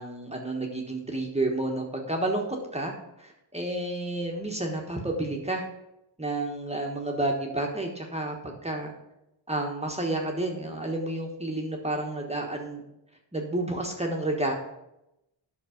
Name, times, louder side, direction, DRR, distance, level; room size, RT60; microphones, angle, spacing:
voice 1, 0.0-2.4 2.7-5.7 6.2-8.9 9.5-12.8 13.3-14.5, right 2 dB, 15° right, 1 dB, 1.2 m, -30 dB
11.0 x 6.0 x 5.0 m, 0.88 s
wide cardioid pair, 150°, 46 cm